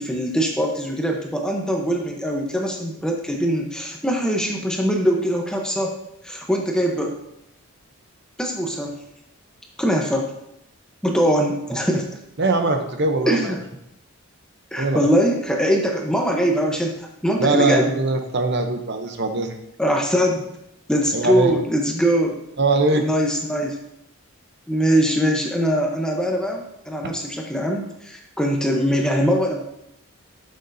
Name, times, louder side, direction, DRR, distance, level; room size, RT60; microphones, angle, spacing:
voice 1, 0.0-5.9 6.2-7.2 8.4-9.0 9.8-10.3 11.0-12.1 13.3-13.6 14.7-17.9 19.8-20.5 20.9-22.4 23.0-23.8 24.7-29.6, equal, 5° left, 1 dB, 0.9 m, -22 dB
voice 2, 12.4-13.5 14.8-15.0 17.4-19.6 21.1-21.5 22.6-23.0, right 3 dB, 50° right, 5 dB, 0.8 m, -21 dB
12.0 x 6.6 x 2.7 m, 0.80 s
head